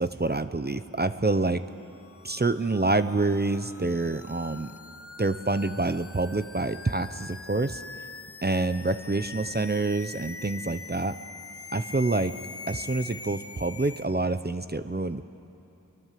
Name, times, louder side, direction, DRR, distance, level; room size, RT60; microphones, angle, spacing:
voice 1, 0.0-1.6 2.2-4.7 5.2-7.8 8.4-11.2 11.7-12.3 12.7-15.3, right 2 dB, 30° right, 11 dB, 0.8 m, -27 dB
sound 1, 1.8-14.1, left 4 dB, 45° left, 0.9 m, -44 dB
27.5 x 23.0 x 7.6 m, 3.0 s
wide cardioid pair, 55°, 33 cm